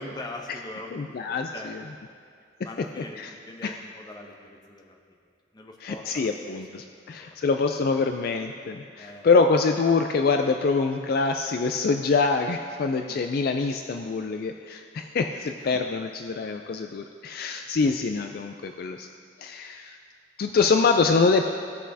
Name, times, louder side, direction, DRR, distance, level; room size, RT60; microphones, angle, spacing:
voice 1, 0.0-2.0 2.6-5.0 5.5-7.4 9.0-9.3 13.0-13.2 20.7-20.9, left 2 dB, 20° left, 1 dB, 0.8 m, -43 dB
voice 2, 0.9-1.8 3.2-3.3 3.6-3.7 5.8-19.1 19.4-20.0 20.4-21.5, left 4 dB, 50° left, 6 dB, 0.3 m, -25 dB
16.5 x 6.2 x 2.7 m, 2.3 s
head